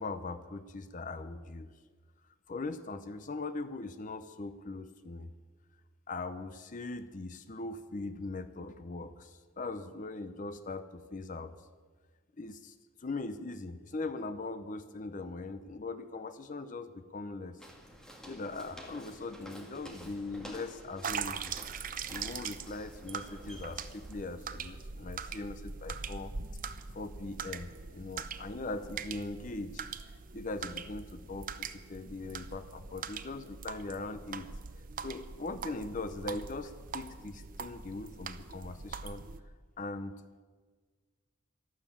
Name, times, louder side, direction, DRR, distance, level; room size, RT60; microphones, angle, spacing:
voice 1, 0.0-1.7 2.5-5.3 6.1-11.6 12.4-17.6 18.3-21.5 22.1-26.3 26.9-29.9 30.3-34.5 35.0-40.3, left 3 dB, 40° left, 11 dB, 0.6 m, -40 dB
Walk footsteps, 17.6-24.3, equal, 5° left, 1.8 m, -50 dB
sound 1, 21.0-39.4, right 6 dB, 40° right, 0.7 m, -42 dB
12.5 x 12.0 x 8.5 m, 1.5 s
head